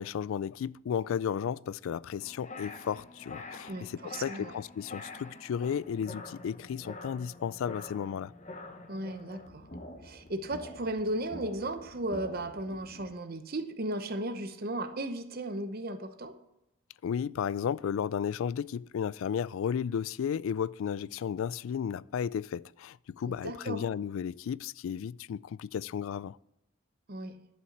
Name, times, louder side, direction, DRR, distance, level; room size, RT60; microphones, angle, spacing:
voice 1, 0.0-8.3 17.0-26.4, left 7 dB, 75° left, 0.3 m, -34 dB
sound 1, 2.2-13.1, left 2 dB, 35° left, 0.8 m, -46 dB
voice 2, 3.7-4.6 8.9-9.7 10.0-16.4 23.3-23.8 27.1-27.4, right 1 dB, 45° right, 0.9 m, -35 dB
11.0 x 5.7 x 7.2 m
head